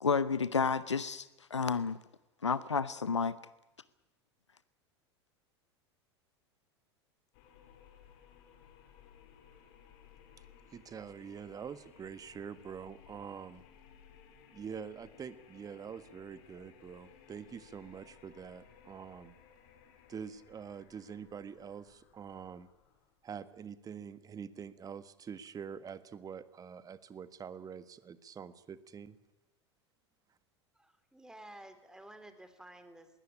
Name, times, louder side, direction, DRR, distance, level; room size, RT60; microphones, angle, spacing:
voice 1, 0.0-2.0 2.4-3.4, left 5 dB, 85° left, 17 dB, 0.7 m, -31 dB
sound 1, 7.3-23.2, left 8 dB, 55° left, 4.0 m, -60 dB
voice 2, 10.7-13.6 14.5-19.3 20.1-22.7 23.2-29.2, right 7 dB, 25° right, 14 dB, 1.5 m, -45 dB
voice 3, 30.8-33.1, right 1 dB, 5° right, 9 dB, 3.4 m, -52 dB
21.5 x 17.0 x 10.0 m, 1.0 s
figure-of-eight pair, 85°, 15 cm